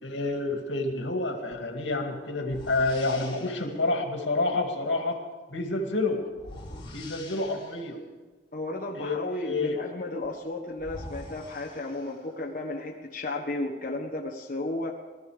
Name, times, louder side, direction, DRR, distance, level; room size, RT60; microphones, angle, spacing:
voice 1, 0.0-5.2 5.5-6.2 6.9-8.0 9.0-9.8, left 2 dB, 85° left, 3 dB, 2.3 m, -29 dB
sound 1, 1.5-1.7 2.4-3.7 6.3-7.9 10.2-10.3 10.8-12.4, left 2 dB, 25° left, 3.8 m, -44 dB
voice 2, 8.5-14.9, left 2 dB, 45° left, -1 dB, 1.4 m, -33 dB
19.5 x 13.5 x 5.0 m, 1.3 s
head